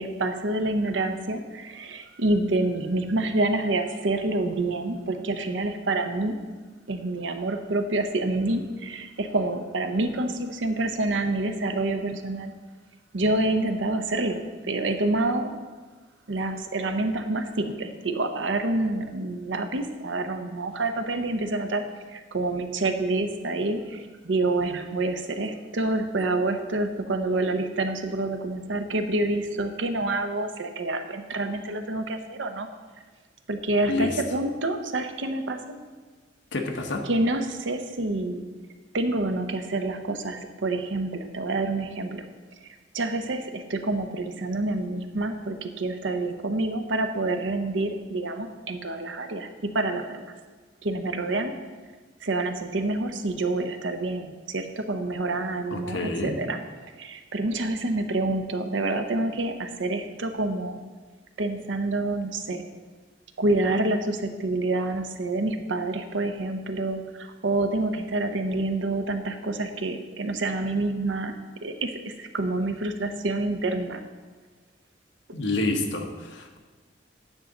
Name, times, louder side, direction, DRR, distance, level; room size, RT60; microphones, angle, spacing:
voice 1, 0.0-6.4 6.9-12.5 13.1-15.5 16.3-21.8 22.1-32.7 33.5-35.8 37.1-38.5 38.9-42.2 42.9-50.2 50.8-51.5 52.2-56.6 57.0-60.8 61.4-62.6 63.4-71.3 71.6-74.0, right 2 dB, 80° right, 7 dB, 0.8 m, -27 dB
voice 2, 36.5-37.0 55.7-56.4 75.3-76.6, left 2 dB, 70° left, 4 dB, 1.0 m, -28 dB
9.9 x 3.8 x 7.1 m, 1.4 s
head